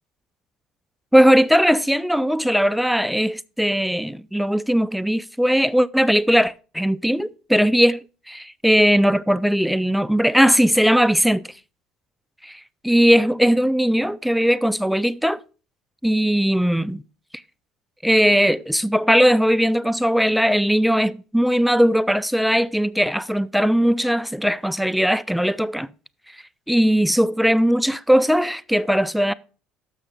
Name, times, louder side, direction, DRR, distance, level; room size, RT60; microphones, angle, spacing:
voice 1, 1.1-11.5 12.4-15.4 16.0-17.0 18.0-25.9 26.7-29.3, equal, ahead, 0.3 m, -19 dB
6.8 x 6.3 x 5.3 m
supercardioid pair, 75°, 2 cm